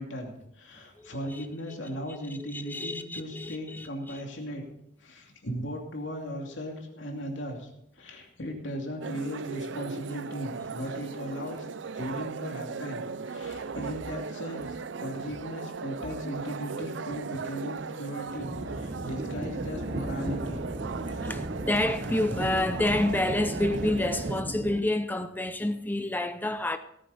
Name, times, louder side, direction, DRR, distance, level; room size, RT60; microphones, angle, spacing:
voice 1, 0.0-4.6 5.0-7.7 8.0-11.7 11.9-20.6 21.0-21.3, equal, 85° left, 2.7 m, -37 dB
voice 2, 1.0-1.5 2.1-4.2 13.7-13.8 15.2-15.3 21.1-26.8, left 1 dB, 10° left, 0.6 m, -29 dB
sound 1, 9.0-24.4, right 5 dB, 75° right, 0.5 m, -38 dB
sound 2, 18.4-24.8, right 1 dB, 35° right, 1.0 m, -35 dB
18.0 x 9.6 x 4.2 m
head